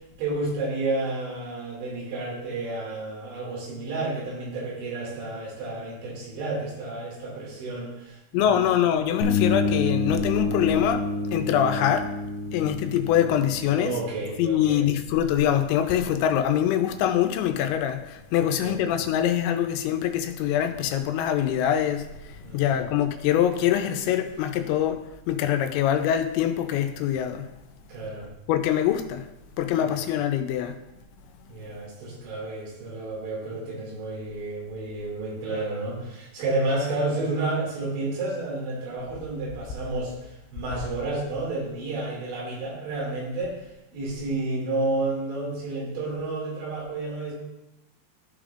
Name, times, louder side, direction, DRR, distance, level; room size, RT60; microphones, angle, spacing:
voice 1, 0.0-8.8 13.7-14.9 18.4-19.0 22.4-22.9 27.9-28.3 29.8-30.0 31.5-43.7 43.9-47.3, right 2 dB, 85° right, -4 dB, 4.6 m, -31 dB
voice 2, 8.3-12.1 12.5-14.0 14.4-25.0 25.3-27.5 28.5-29.2 29.6-30.7, left 10 dB, 85° left, 7 dB, 3.0 m, -24 dB
sound 1, 9.2-16.9, left 3 dB, 60° left, 1.8 m, -29 dB
14.5 x 5.1 x 2.5 m, 0.92 s
omnidirectional pair, 5.1 m